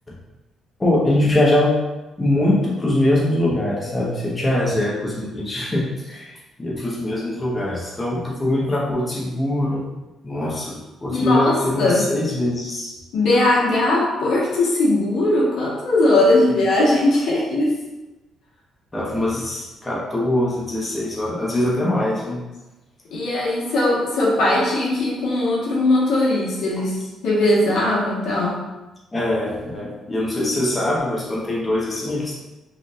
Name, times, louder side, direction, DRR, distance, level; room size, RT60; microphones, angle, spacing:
voice 1, 0.8-1.8 2.2-6.3 6.6-9.9 10.2-12.9 16.5-16.6 18.9-22.4 26.8-26.9 29.1-32.3, left 1 dB, 20° left, -5 dB, 1.2 m, -22 dB
voice 2, 11.1-12.1 13.1-17.7 23.1-26.9 27.2-28.6, left 2 dB, 75° left, -5 dB, 1.4 m, -19 dB
5.0 x 3.4 x 2.5 m, 1.1 s
cardioid pair, 90°, 0 cm